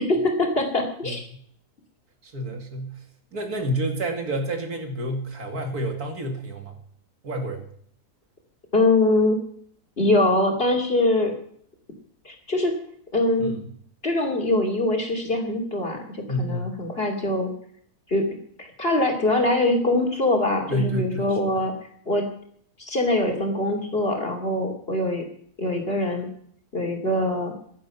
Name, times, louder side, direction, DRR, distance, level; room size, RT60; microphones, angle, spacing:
voice 1, 0.0-1.2 8.7-9.4 10.0-11.3 12.2-12.7 13.1-13.5 14.0-17.5 18.1-18.2 18.6-21.7 22.1-22.2 22.9-25.2 25.6-26.3 26.7-27.5, left 2 dB, 40° left, 2 dB, 3.0 m, -23 dB
voice 2, 1.0-1.4 2.2-3.0 3.3-6.8 7.2-7.7 13.4-13.6 16.3-16.7 20.7-21.4, right 1 dB, 70° right, 4 dB, 2.7 m, -29 dB
16.0 x 10.5 x 5.7 m, 0.63 s
omnidirectional pair, 1.6 m